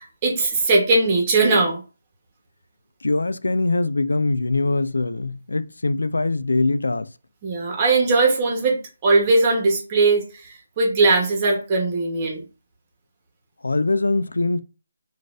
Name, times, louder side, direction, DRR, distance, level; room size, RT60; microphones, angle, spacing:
voice 1, 0.0-1.8 7.4-12.4, right 3 dB, 25° right, 1.0 m, -20 dB
voice 2, 3.0-7.1 13.6-14.6, left 2 dB, 85° left, 0.3 m, -22 dB
3.9 x 2.4 x 2.4 m
figure-of-eight pair, 160°, 0 cm